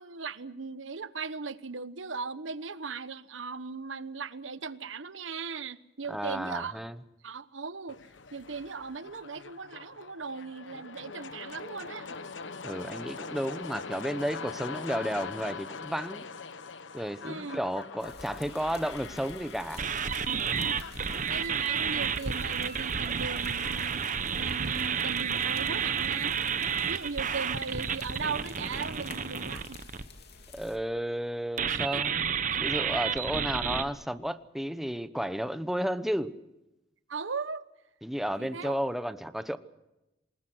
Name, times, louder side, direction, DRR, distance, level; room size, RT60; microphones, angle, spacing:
voice 1, 0.0-6.8 7.2-8.0 8.3-12.2 17.2-17.6 21.3-24.0 24.3-26.4 26.8-29.8 31.7-32.0 32.5-32.6 37.1-37.6 38.4-38.8, right 4 dB, 85° right, 1.1 m, -38 dB
voice 2, 6.1-7.0 12.6-16.2 16.9-19.8 30.5-36.3 38.0-39.6, equal, ahead, 0.9 m, -33 dB
sound 1, 7.9-23.9, left 4 dB, 75° left, 1.1 m, -43 dB
sound 2, 18.0-30.8, left 3 dB, 60° left, 3.0 m, -50 dB
sound 3, 19.8-30.0 31.6-33.8, right 7 dB, 45° right, 1.1 m, -31 dB
27.5 x 20.5 x 6.2 m
head